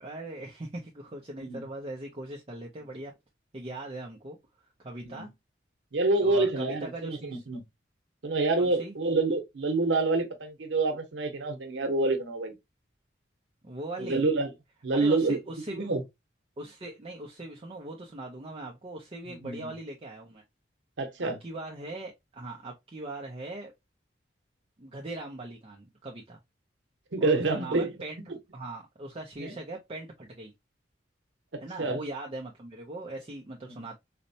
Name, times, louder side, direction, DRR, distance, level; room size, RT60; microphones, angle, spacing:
voice 1, 0.0-3.1 3.5-4.4 4.8-5.3 6.2-7.4 8.6-8.9 13.6-14.2 14.9-15.9 16.6-20.4 21.4-23.7 24.8-26.4 27.2-28.2 28.5-30.5 31.6-34.0, right 2 dB, 30° right, 0.5 m, -40 dB
voice 2, 5.9-7.6 8.2-12.5 14.0-14.5 14.8-15.4 15.7-16.0 19.3-19.7 21.0-21.4 27.1-28.0 29.4-29.5 31.5-32.0 33.7-33.8, right 3 dB, 85° right, 0.8 m, -27 dB
4.1 x 2.1 x 2.6 m
head